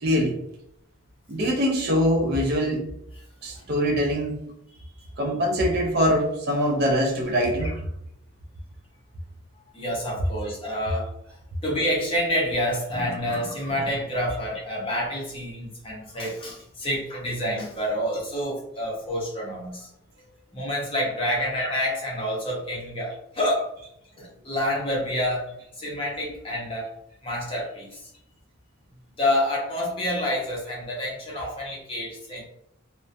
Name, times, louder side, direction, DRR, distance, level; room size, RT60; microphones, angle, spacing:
voice 1, 0.0-0.4 1.3-2.9 3.4-4.4 5.2-7.7, equal, 45° right, 1 dB, 0.4 m, -23 dB
voice 2, 9.7-11.1 11.6-19.9 20.5-23.7 24.2-26.9 27.2-28.1 29.2-32.4, equal, 25° left, -4 dB, 0.6 m, -28 dB
2.4 x 2.1 x 2.4 m, 0.78 s
head